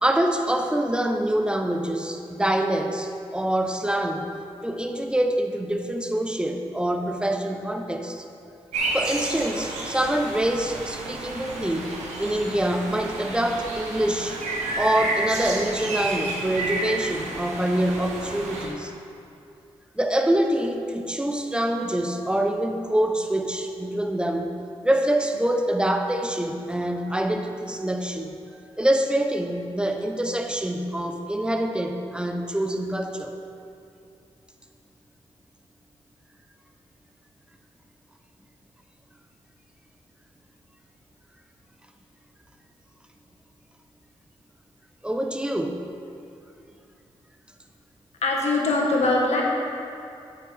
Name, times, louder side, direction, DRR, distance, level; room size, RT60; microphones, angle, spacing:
voice 1, 0.0-4.3 4.6-8.3 8.9-14.4 14.8-18.9 19.9-24.6 24.8-28.4 28.8-33.3 45.0-45.9 48.9-49.0, right 1 dB, 10° right, 5 dB, 1.0 m, -25 dB
sound 1, 8.7-18.7, right 2 dB, 85° right, 1.2 m, -31 dB
voice 2, 48.2-49.4, left 2 dB, 70° left, -2 dB, 1.8 m, -22 dB
8.6 x 8.6 x 3.6 m, 2.6 s
supercardioid pair, 45°, 12 cm